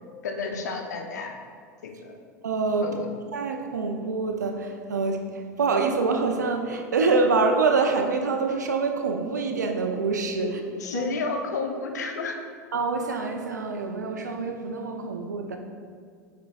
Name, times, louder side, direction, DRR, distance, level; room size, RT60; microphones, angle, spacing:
voice 1, 0.2-1.4 1.8-2.1 2.8-3.1 10.4-10.5 10.8-12.4, left 4 dB, 75° left, 3 dB, 0.8 m, -31 dB
voice 2, 2.4-2.9 3.3-5.2 5.6-10.6 10.9-11.1 12.7-15.6, right 4 dB, 85° right, 4 dB, 0.6 m, -25 dB
8.4 x 6.2 x 2.4 m, 2.1 s
hypercardioid pair, 80°, 9 cm